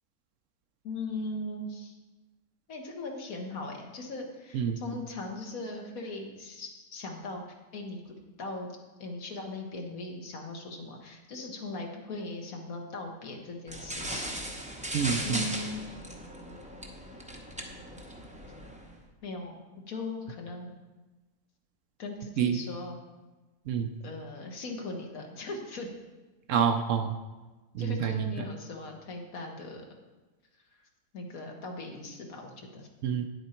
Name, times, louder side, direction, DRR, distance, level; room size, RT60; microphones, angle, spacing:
voice 1, 0.8-1.9 2.7-7.4 7.7-8.7 9.0-14.4 14.8-15.8 19.2-19.6 19.9-20.8 22.0-23.0 24.0-25.9 27.8-29.8 31.1-32.9, left 2 dB, 70° left, 2 dB, 1.7 m, -39 dB
sound 1, 13.7-19.0, right 1 dB, 5° right, 0.6 m, -38 dB
voice 2, 14.9-15.4 22.4-22.6 23.7-23.9 26.5-27.1 27.8-28.1 33.0-33.3, right 7 dB, 65° right, 7 dB, 0.9 m, -27 dB
9.8 x 7.9 x 4.4 m, 1.2 s
omnidirectional pair, 1.6 m